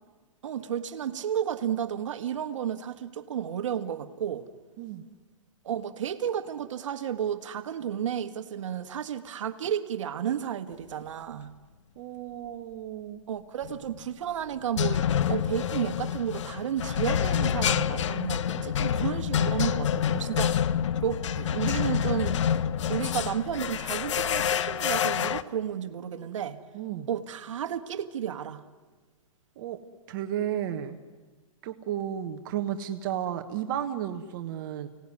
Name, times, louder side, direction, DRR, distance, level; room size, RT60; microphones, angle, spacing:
voice 1, 0.4-4.5 5.6-11.5 13.3-20.7 21.0-22.4 22.9-26.6 27.1-28.6, right 9 dB, 65° right, 8 dB, 1.6 m, -32 dB
voice 2, 12.0-13.2 18.9-19.1 26.7-27.1 29.6-29.8 30.1-31.0 31.6-34.9, right 10 dB, 35° right, 6 dB, 1.2 m, -33 dB
sound 1, 13.6-14.0 14.8-25.4, left 9 dB, 60° left, 0.8 m, -27 dB
30.0 x 18.0 x 9.7 m, 1.4 s
hypercardioid pair, 155°, 17 cm